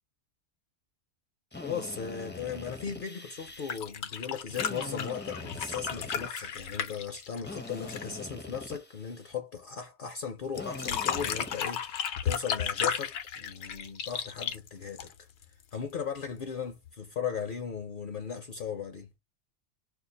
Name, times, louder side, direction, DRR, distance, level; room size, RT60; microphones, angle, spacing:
Drill, 1.5-3.8 4.5-6.8 7.4-9.3 10.5-11.9, left 3 dB, 15° left, 0.4 m, -43 dB
voice 1, 1.6-15.1 15.7-19.1, left 7 dB, 55° left, 0.7 m, -37 dB
sound 1, 3.5-8.2 10.6-15.4 16.9-17.0, left 8 dB, 80° left, 0.9 m, -34 dB
2.6 x 2.4 x 3.8 m
omnidirectional pair, 1.2 m